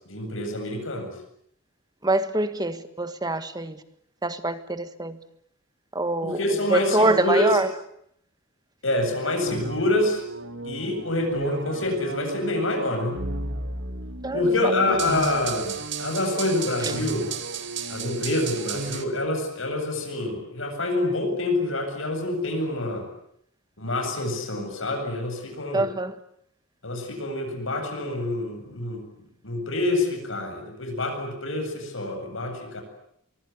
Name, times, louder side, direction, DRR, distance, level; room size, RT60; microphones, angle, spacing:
voice 1, 0.1-1.1 6.2-7.5 8.8-10.2 10.6-13.2 14.3-17.3 17.9-23.1 23.8-25.8 26.8-29.0 29.4-32.8, left 2 dB, 70° left, 7.9 m, -26 dB
voice 2, 2.0-3.8 4.2-5.2 5.9-6.4 6.7-7.7 14.2-15.0 25.7-26.1, right 2 dB, 20° right, 1.6 m, -25 dB
sound 1, 9.4-19.0, right 4 dB, 60° right, 2.5 m, -33 dB
24.5 x 24.0 x 9.5 m
head